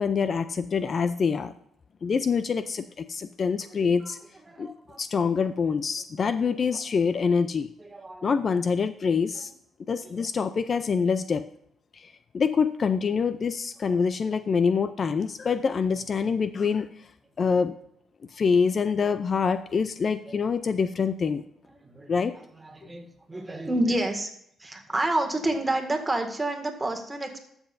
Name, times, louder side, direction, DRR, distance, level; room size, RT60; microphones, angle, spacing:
voice 1, 0.0-1.5 2.0-4.2 4.6-7.7 8.2-9.5 9.9-11.5 11.9-16.9 17.4-17.8 18.3-21.4 22.1-22.4, left 5 dB, 45° left, 12 dB, 0.4 m, -25 dB
voice 2, 3.8-4.1 4.5-5.0 7.8-8.3 10.2-10.3 20.3-20.4 21.7-22.1 22.6-24.3 24.6-27.4, right 1 dB, 15° right, 4 dB, 1.9 m, -29 dB
13.0 x 7.1 x 2.6 m, 0.69 s
cardioid pair, 90°, 0 cm